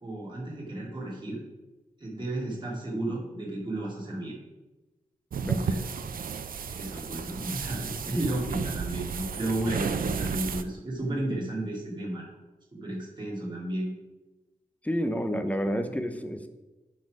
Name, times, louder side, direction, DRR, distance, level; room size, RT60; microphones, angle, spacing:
voice 1, 0.0-1.4 2.0-4.4 5.4-5.9 6.8-12.3 12.7-13.9 15.9-16.0, right 1 dB, 35° right, -5 dB, 2.6 m, -33 dB
sound 1, 5.3-10.6, right 6 dB, 85° right, 0.5 m, -33 dB
voice 2, 14.8-16.5, equal, 10° left, 8 dB, 0.6 m, -29 dB
10.5 x 4.3 x 4.9 m, 1.1 s
wide cardioid pair, 140°, 14 cm